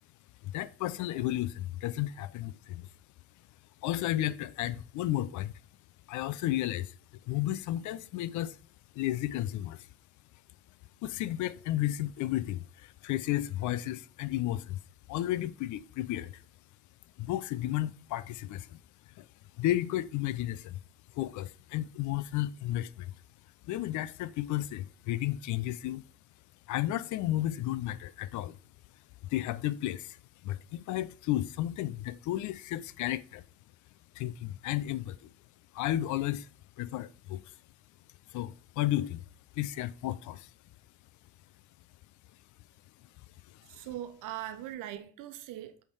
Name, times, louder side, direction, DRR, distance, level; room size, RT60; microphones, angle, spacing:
voice 1, 0.4-2.9 3.8-5.5 6.1-6.9 7.3-8.6 8.9-9.9 11.0-14.8 15.1-16.4 17.2-18.8 19.2-19.3 19.6-20.8 21.1-23.1 23.6-26.0 26.7-28.6 29.3-30.2 30.4-33.4 34.1-35.3 35.7-36.5 36.8-37.5 38.3-39.2 39.6-40.5 43.5-43.6, left 14 dB, 60° left, 0.5 m, -33 dB
voice 2, 43.7-45.8, right 12 dB, 65° right, 1.0 m, -40 dB
8.4 x 3.5 x 4.6 m
hypercardioid pair, 50°, 33 cm